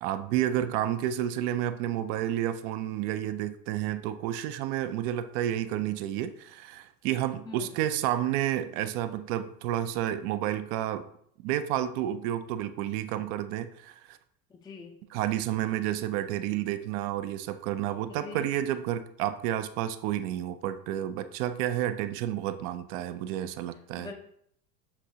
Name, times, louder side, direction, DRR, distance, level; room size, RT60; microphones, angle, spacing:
voice 1, 0.0-11.1 11.4-14.2 15.1-24.1, right 12 dB, 65° right, 10 dB, 0.5 m, -30 dB
voice 2, 14.5-14.9 18.2-18.5 24.0-24.1, left 4 dB, 10° left, 3 dB, 0.4 m, -43 dB
7.0 x 2.6 x 2.8 m, 0.68 s
hypercardioid pair, 90°, 48 cm